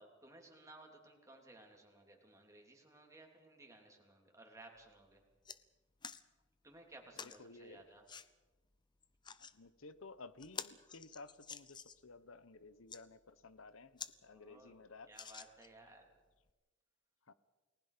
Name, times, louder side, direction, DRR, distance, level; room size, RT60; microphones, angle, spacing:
voice 1, 0.0-5.2 6.6-8.0 14.2-14.7 15.1-16.1, right 2 dB, 15° right, 1 dB, 3.5 m, -58 dB
sound 1, 4.8-4.9 5.2-5.6 6.0-6.2 7.1-7.4 8.1-8.3 9.0-9.5 10.0-10.1 10.4-12.1 12.7-13.0 13.6-13.7 14.0-14.1 14.5-14.6 15.1-15.8 16.5-16.6, left 6 dB, 20° left, 0.7 m, -49 dB
voice 2, 7.4-7.9 9.4-15.3 17.3-17.4, left 3 dB, 65° left, 15 dB, 1.0 m, -55 dB
29.5 x 20.0 x 5.1 m, 1.2 s
head